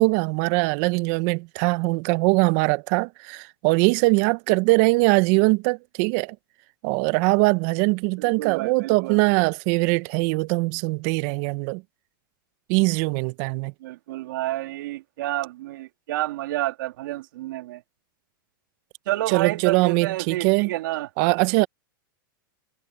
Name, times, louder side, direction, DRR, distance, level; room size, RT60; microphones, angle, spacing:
voice 1, 0.0-6.4 6.8-11.8 12.7-13.7 19.3-20.7 21.2-21.7, right 27 dB, 50° right, 1.0 m, -22 dB
voice 2, 8.2-9.2 13.8-17.8 19.1-21.1, right 16 dB, 65° right, 3.6 m, -29 dB
hypercardioid pair, 120°, 11 cm